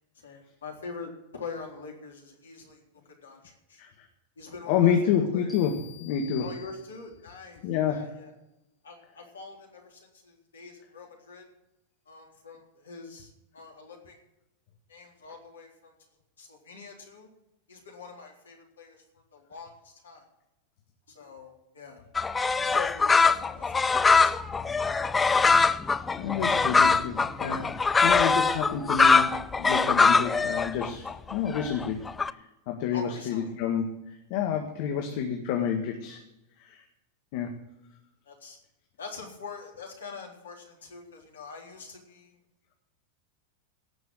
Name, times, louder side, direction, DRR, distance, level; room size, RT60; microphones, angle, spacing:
voice 1, 0.1-3.8 4.4-5.6 6.4-7.6 7.9-8.4 8.8-11.4 12.1-14.2 14.9-15.9 16.4-17.3 17.7-19.0 19.3-20.2 21.1-22.0 22.6-24.3 32.9-33.6 38.3-38.6 39.0-42.4, left 5 dB, 80° left, 1 dB, 3.7 m, -44 dB
voice 2, 4.7-6.5 7.6-8.1 26.2-27.7 28.0-32.1 32.7-36.2 36.6-36.8 37.3-37.5, left 8 dB, 55° left, 3 dB, 1.8 m, -28 dB
sound 1, 5.5-7.3, left 8 dB, 5° right, 3.4 m, -49 dB
sound 2, 22.1-32.3, left 4 dB, 15° left, 0.5 m, -22 dB
18.0 x 6.2 x 7.7 m, 0.93 s
hypercardioid pair, 95°, 0 cm